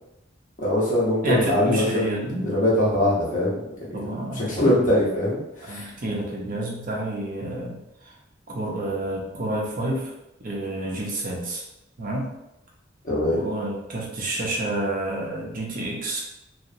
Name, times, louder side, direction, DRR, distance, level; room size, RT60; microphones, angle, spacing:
voice 1, 0.6-5.9 13.0-13.4, left 1 dB, 45° left, -6 dB, 0.7 m, -23 dB
voice 2, 1.2-2.5 3.9-4.5 5.7-7.8 8.5-10.1 10.4-11.6 12.0-12.2 13.3-16.2, right 1 dB, 45° right, -3 dB, 0.6 m, -29 dB
2.8 x 2.0 x 2.5 m, 0.88 s
head